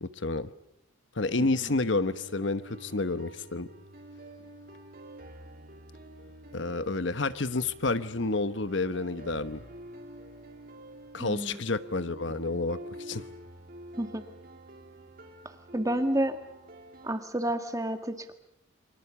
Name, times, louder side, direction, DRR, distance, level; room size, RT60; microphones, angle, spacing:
voice 1, 0.0-0.5 1.2-3.7 6.5-9.6 11.1-13.2, left 3 dB, 65° left, 13 dB, 1.1 m, -30 dB
sound 1, 1.2-17.2, right 1 dB, 45° right, 2.8 m, -48 dB
voice 2, 1.4-1.7 11.2-11.6 14.0-14.2 15.7-16.4 17.0-18.3, right 1 dB, 15° right, 8 dB, 1.8 m, -30 dB
28.5 x 25.0 x 7.1 m, 0.79 s
head